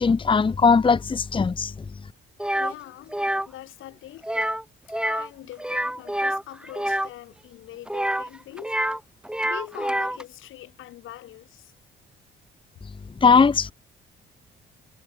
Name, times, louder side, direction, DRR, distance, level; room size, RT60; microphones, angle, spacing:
voice 1, 0.0-1.7 13.2-13.7, left 5 dB, 25° left, 1.0 m, -19 dB
sound 1, 2.4-2.7 3.1-3.5 4.2-4.6 4.9-5.3 5.6-7.1 7.9-9.0 9.3-10.2, right 1 dB, 5° right, 1.9 m, -27 dB
voice 2, 2.5-3.2 3.4-4.6 5.0-8.8 9.4-11.7, left 14 dB, 85° left, 6.6 m, -42 dB
cardioid pair, 90°, 20 cm